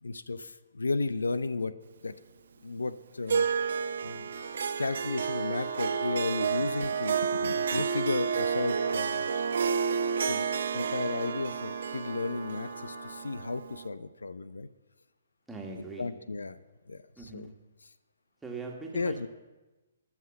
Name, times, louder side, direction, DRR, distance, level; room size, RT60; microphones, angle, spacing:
voice 1, 0.0-2.2 2.6-3.5 4.0-4.3 4.8-9.5 10.3-14.7 16.0-16.6 16.9-17.5 18.9-19.3, left 3 dB, 85° left, 15 dB, 0.6 m, -34 dB
Harp, 3.3-13.9, right 6 dB, 70° right, 0.7 m, -30 dB
Wind instrument woodwind instrument, 4.3-13.5, left 3 dB, 65° left, 3.0 m, -47 dB
voice 2, 15.5-16.1 17.2-17.5 18.4-19.3, right 3 dB, 5° right, 0 dB, 2.0 m, -41 dB
14.5 x 6.0 x 7.8 m, 1.1 s
hypercardioid pair, 140°, 0 cm